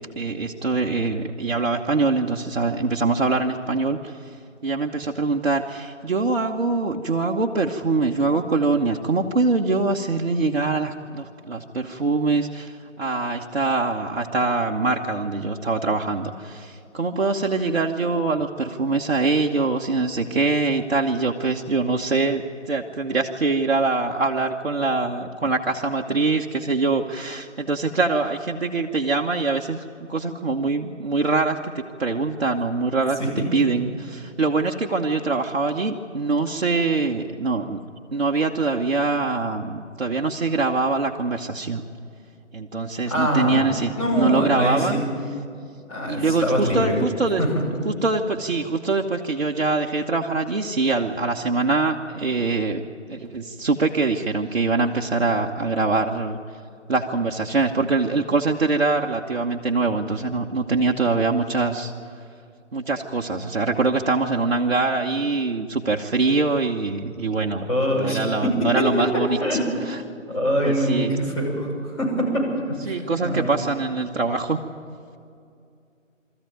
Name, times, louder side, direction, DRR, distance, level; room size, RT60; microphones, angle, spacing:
voice 1, 0.2-4.4 4.6-37.8 38.1-41.8 42.5-45.0 46.0-47.4 47.8-52.8 53.1-56.4 56.9-61.9 62.7-67.7 67.9-70.0 70.6-71.2 72.9-74.6, right 3 dB, 55° right, 0 dB, 1.1 m, -23 dB
voice 2, 43.1-43.6 44.0-45.1 45.9-47.0 47.4-47.6 67.7-68.9 69.4-69.6 70.3-71.7 72.0-72.9 73.2-73.5, equal, 20° left, -7 dB, 6.1 m, -23 dB
24.0 x 14.0 x 9.2 m, 2.5 s
figure-of-eight pair, 165°, 39 cm